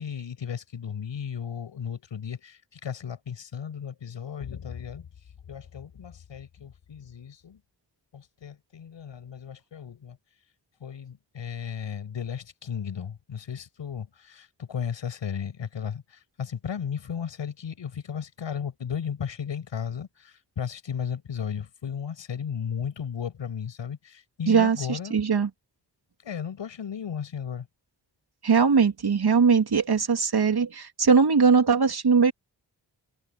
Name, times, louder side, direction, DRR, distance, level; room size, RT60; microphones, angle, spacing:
voice 1, 0.0-5.1 5.5-7.6 8.1-10.2 10.8-25.2 26.2-27.7, left 7 dB, 90° left, 7.5 m, -35 dB
voice 2, 24.5-25.5 28.4-32.3, right 5 dB, 60° right, 2.9 m, -20 dB
cardioid pair, 50°, 43 cm